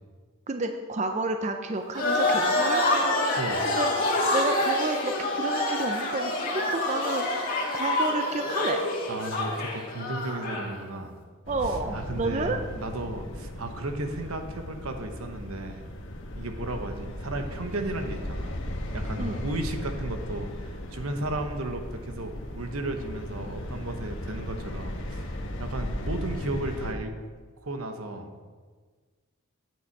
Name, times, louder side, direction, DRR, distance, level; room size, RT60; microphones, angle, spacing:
voice 1, 0.5-2.8 3.6-3.9 4.3-7.3 7.7-8.8 11.5-12.6 19.2-19.4, right 3 dB, 30° right, 6 dB, 0.5 m, -30 dB
sound 1, 1.9-10.7, left 2 dB, 40° left, 1.8 m, -27 dB
voice 2, 9.1-11.2 11.6-15.8 16.4-18.6 18.9-27.1 27.6-28.4, right 2 dB, 80° right, 6 dB, 1.0 m, -34 dB
sound 2, 11.4-26.9, left 1 dB, 60° left, 1.2 m, -36 dB
9.1 x 8.5 x 4.7 m, 1.5 s
head